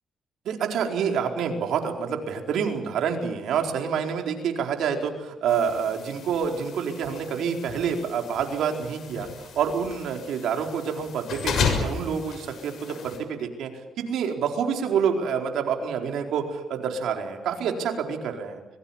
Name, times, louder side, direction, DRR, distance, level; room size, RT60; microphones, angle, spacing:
voice 1, 0.4-13.7 14.0-18.6, right 7 dB, 80° right, 3 dB, 4.4 m, -27 dB
sound 1, 5.5-13.2, left 6 dB, 70° left, 6.7 m, -34 dB
25.5 x 22.0 x 7.4 m, 1.1 s
cardioid pair, 80°, 0 cm